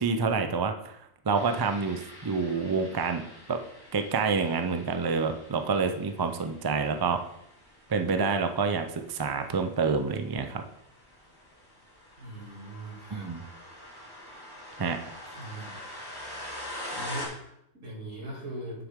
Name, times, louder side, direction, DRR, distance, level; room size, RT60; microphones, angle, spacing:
voice 1, 0.0-3.2 3.5-3.6 3.9-7.2 7.9-10.6 13.1-13.4 14.8-15.0, right 4 dB, 35° right, 7 dB, 0.3 m, -28 dB
sound 1, 1.3-17.2, left 1 dB, 15° left, 2.1 m, -45 dB
voice 2, 12.2-13.3 15.3-15.7 16.9-18.9, right 1 dB, 70° right, -4 dB, 3.2 m, -40 dB
9.4 x 6.8 x 3.7 m, 0.76 s
omnidirectional pair, 1.4 m